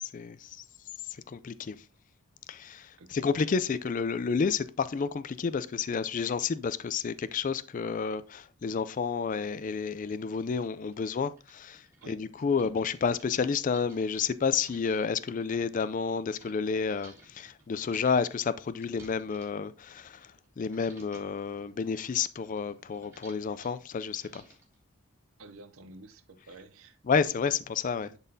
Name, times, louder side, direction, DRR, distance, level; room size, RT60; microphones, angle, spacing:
voice 1, 0.1-0.6 1.1-1.8 2.5-24.4 27.1-28.1, left 5 dB, 40° left, 0.3 m, -30 dB
voice 2, 3.0-3.3 12.0-12.2 12.7-12.8 25.4-27.0 28.0-28.2, right 2 dB, 75° right, 0.6 m, -50 dB
sound 1, 10.3-10.4 10.9-11.0 11.3-16.5 17.0-20.5 20.7-21.4 21.8-24.8, right 2 dB, 10° right, 1.9 m, -57 dB
11.0 x 4.0 x 2.7 m
head